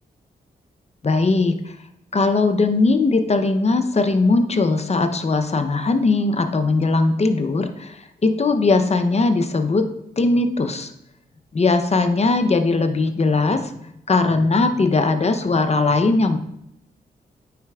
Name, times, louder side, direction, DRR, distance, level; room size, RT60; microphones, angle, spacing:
voice 1, 1.0-1.8 2.1-9.9 10.2-10.9 11.5-16.4, left 3 dB, 35° left, 7 dB, 0.7 m, -19 dB
9.3 x 4.2 x 2.4 m, 0.78 s
supercardioid pair, 50°, 19 cm